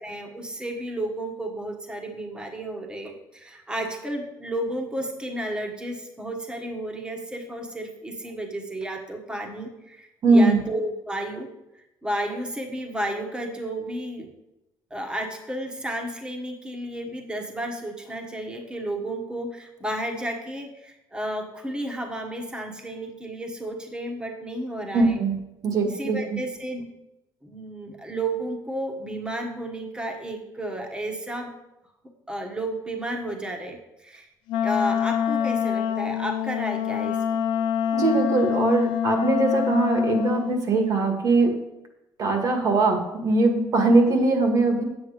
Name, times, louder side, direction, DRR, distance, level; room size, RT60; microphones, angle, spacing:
voice 1, 0.0-11.5 12.0-14.3 14.9-25.2 25.8-26.8 27.4-31.5 32.3-34.3 34.6-37.4, right 1 dB, 10° right, 3 dB, 1.4 m, -32 dB
voice 2, 10.2-10.6 24.9-25.3 25.6-26.4 37.9-41.5 42.2-44.8, right 3 dB, 50° right, 3 dB, 2.0 m, -21 dB
Wind instrument woodwind instrument, 34.5-40.6, left 8 dB, 85° left, 0.8 m, -25 dB
9.4 x 8.2 x 5.1 m, 0.92 s
cardioid pair, 140°, 8 cm